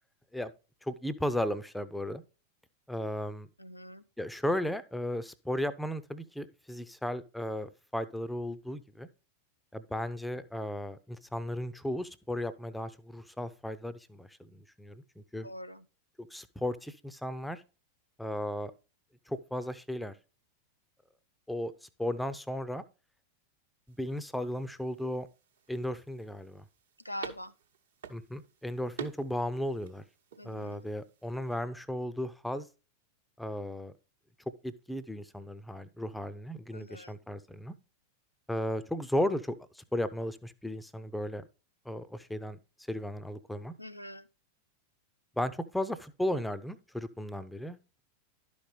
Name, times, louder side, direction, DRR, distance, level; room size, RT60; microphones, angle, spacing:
voice 1, 0.8-2.2 2.9-3.5 4.2-9.1 9.7-15.5 16.3-17.6 18.2-18.7 19.3-20.1 21.5-21.7 22.0-22.8 24.0-25.3 25.7-26.6 28.1-30.0 30.4-32.7 33.4-33.9 34.6-37.7 38.5-41.5 41.9-42.6 42.9-43.7 45.4-48.0, left 1 dB, 5° left, 0.5 m, -35 dB
voice 2, 3.6-4.0 15.4-15.8 27.0-27.5 30.4-30.8 36.7-37.1 43.8-44.2, left 1 dB, 85° left, 0.4 m, -43 dB
sound 1, 23.9-31.6, right 8 dB, 65° right, 0.9 m, -49 dB
11.5 x 5.2 x 3.1 m
figure-of-eight pair, 90°, 0 cm